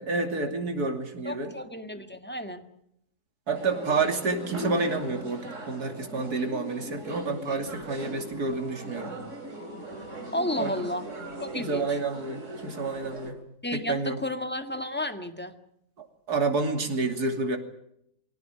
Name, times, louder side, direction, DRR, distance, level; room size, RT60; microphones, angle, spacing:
voice 1, 0.0-1.5 3.5-9.2 10.6-10.7 11.5-13.4 13.7-14.2 16.0-17.6, right 3 dB, 75° right, 5 dB, 3.3 m, -29 dB
voice 2, 1.3-2.6 10.3-11.0 11.4-12.0 13.6-15.5, left 1 dB, 5° left, 7 dB, 1.8 m, -32 dB
sound 1, 3.5-13.3, right 1 dB, 50° right, 3.8 m, -39 dB
24.0 x 17.0 x 9.1 m, 0.76 s
omnidirectional pair, 1.7 m